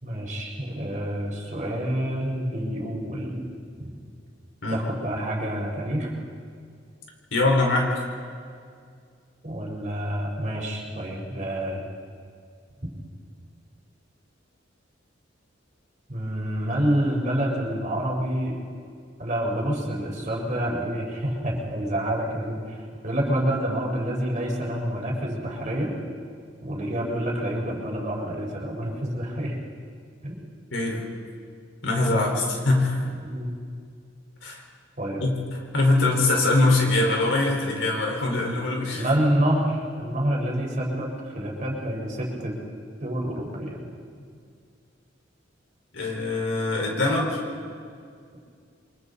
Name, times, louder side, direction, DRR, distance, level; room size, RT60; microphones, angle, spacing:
voice 1, 0.0-3.5 3.8-3.9 4.7-6.1 9.4-11.8 16.1-18.6 19.2-22.8 23.0-25.9 26.6-29.6 30.2-30.4 32.1-32.4 33.2-33.5 35.0-35.2 38.9-42.5 43.0-43.8, right 1 dB, 40° right, -2 dB, 4.5 m, -28 dB
voice 2, 7.3-8.0 30.7-31.0 31.8-33.1 34.4-34.6 35.2-39.0 45.9-47.4, left 2 dB, 80° left, 0 dB, 4.8 m, -23 dB
29.5 x 23.5 x 4.2 m, 2.2 s
head